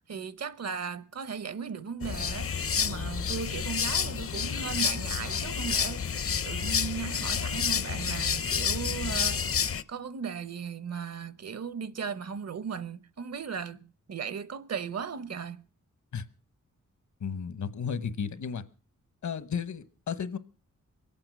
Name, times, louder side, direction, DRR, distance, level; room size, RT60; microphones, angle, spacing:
voice 1, 0.1-15.7, right 6 dB, 55° right, 0.9 m, -37 dB
sound 1, 2.0-9.8, left 7 dB, 50° left, 0.7 m, -29 dB
voice 2, 17.2-18.6 19.2-20.4, left 6 dB, 70° left, 1.1 m, -33 dB
23.0 x 8.8 x 6.1 m
wide cardioid pair, 105°, 30 cm